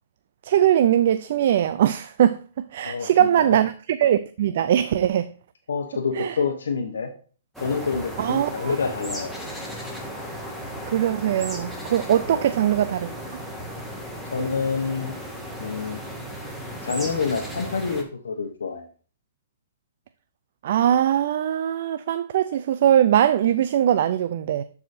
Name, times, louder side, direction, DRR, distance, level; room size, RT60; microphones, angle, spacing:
voice 1, 0.4-2.4 2.7-5.3 6.2-6.4 8.2-8.8 10.9-13.1 20.6-24.6, right 10 dB, 60° right, 0.4 m, -21 dB
voice 2, 2.8-3.6 5.7-7.1 7.6-9.3 12.3-12.5 14.3-15.1 15.6-16.0 16.8-18.8, left 5 dB, 85° left, 1.0 m, -27 dB
sound 1, 7.5-18.0, equal, ahead, 1.5 m, -35 dB
11.5 x 4.8 x 2.6 m
hypercardioid pair, 135°, 0 cm